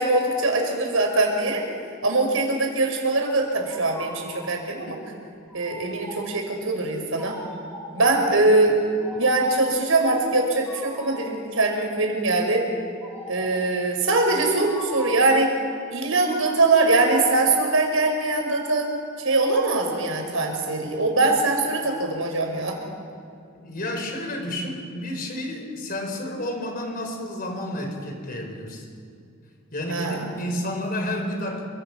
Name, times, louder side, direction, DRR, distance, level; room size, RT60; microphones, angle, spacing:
voice 1, 0.0-1.6 2.0-5.0 5.5-7.4 7.9-8.7 9.1-12.7 13.3-15.5 15.9-18.9 19.2-22.8 29.9-30.2, right 2 dB, 85° right, 2 dB, 5.5 m, -22 dB
sound 1, 3.7-4.5 5.5-6.4 7.1-8.1 8.9-9.8 10.7-11.4 13.0-13.7 14.6-15.4, equal, 10° left, 7.7 m, -40 dB
voice 2, 23.5-28.9 29.7-31.6, left 1 dB, 45° left, 3 dB, 4.9 m, -30 dB
28.0 x 25.0 x 6.2 m, 2.3 s
head